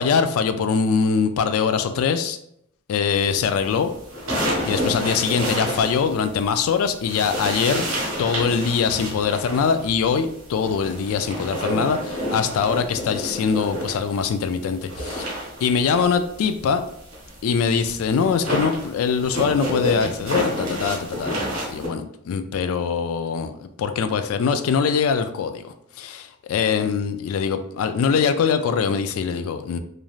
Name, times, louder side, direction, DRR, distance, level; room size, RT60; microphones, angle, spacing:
voice 1, 0.0-2.4 2.9-3.9 4.6-7.9 8.2-16.8 17.4-29.8, left 6 dB, 80° left, 11 dB, 0.3 m, -23 dB
sound 1, 3.4-6.6 7.0-14.3 14.6-21.9, equal, 70° right, 1.4 m, -29 dB
3.1 x 2.5 x 2.3 m, 0.73 s
head